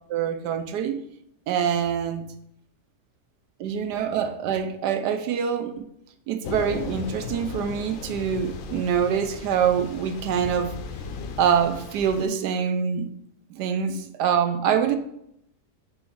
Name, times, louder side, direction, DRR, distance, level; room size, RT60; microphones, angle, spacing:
voice 1, 0.1-1.0 1.5-2.2 3.6-5.9 6.3-10.7 11.4-13.1 13.5-15.0, right 8 dB, 85° right, 1.2 m, -25 dB
Thunder / Rain, 6.4-12.3, left 5 dB, 65° left, 0.8 m, -36 dB
4.7 x 4.3 x 5.5 m
omnidirectional pair, 1.8 m